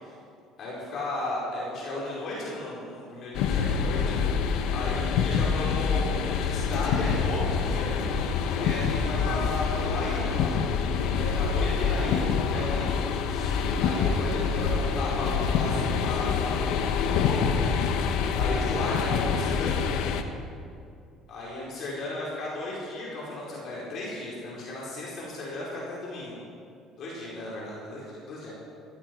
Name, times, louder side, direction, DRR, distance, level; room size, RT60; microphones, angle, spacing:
voice 1, 0.6-4.2 4.7-7.9 8.5-10.6 10.9-17.5 18.3-19.8 21.3-26.4 27.0-28.5, left 2 dB, 55° left, -6 dB, 4.5 m, -35 dB
sound 1, 3.3-20.2, left 6 dB, 75° left, 1.1 m, -26 dB
16.0 x 15.5 x 4.7 m, 2.4 s
cardioid pair, 120°, 0 cm